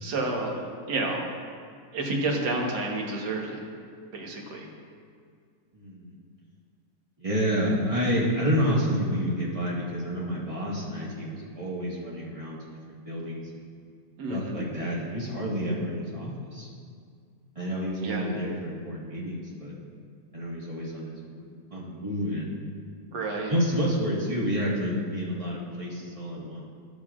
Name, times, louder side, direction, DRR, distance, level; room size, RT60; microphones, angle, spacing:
voice 1, 0.0-0.6 0.9-1.3 1.9-3.6 4.1-4.7 14.2-14.6 18.0-18.3 23.1-23.5, right 2 dB, 85° right, 0 dB, 1.8 m, -30 dB
voice 2, 5.7-6.1 7.2-12.6 12.9-13.6 14.3-16.7 17.5-19.8 20.3-22.5 23.5-26.6, equal, 20° right, -6 dB, 1.6 m, -29 dB
12.0 x 8.7 x 2.4 m, 2.1 s
omnidirectional pair, 1.7 m